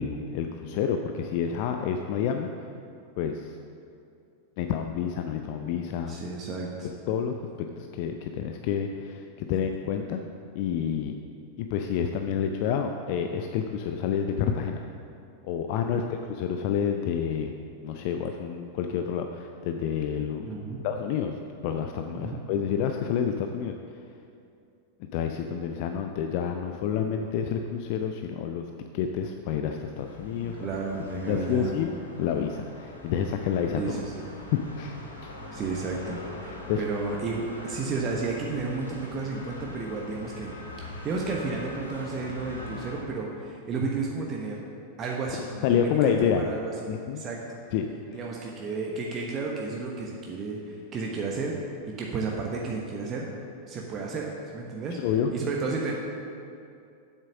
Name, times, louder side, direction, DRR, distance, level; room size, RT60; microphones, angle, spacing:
voice 1, 0.0-2.5 3.2-3.5 4.6-6.2 7.1-7.4 7.8-10.2 10.5-11.1 11.6-14.9 15.4-17.5 17.8-20.4 20.8-21.3 21.6-23.7 25.0-30.5 31.3-31.9 32.2-33.8 34.5-35.0 35.2-35.3 36.7-36.8 45.6-46.4 46.9-47.2 47.7-48.2 55.0-55.3, left 8 dB, 45° left, 5 dB, 0.5 m, -28 dB
voice 2, 6.1-6.9 15.8-16.1 20.4-20.8 22.1-22.4 30.4-31.7 33.8-34.3 35.5-40.5 41.0-44.6 45.0-47.6 48.1-53.3 53.7-55.9, right 3 dB, 30° right, -1 dB, 1.1 m, -32 dB
sound 1, 30.0-43.0, left 1 dB, 80° left, 1.4 m, -42 dB
8.1 x 7.5 x 6.2 m, 2.5 s
figure-of-eight pair, 90°, 0 cm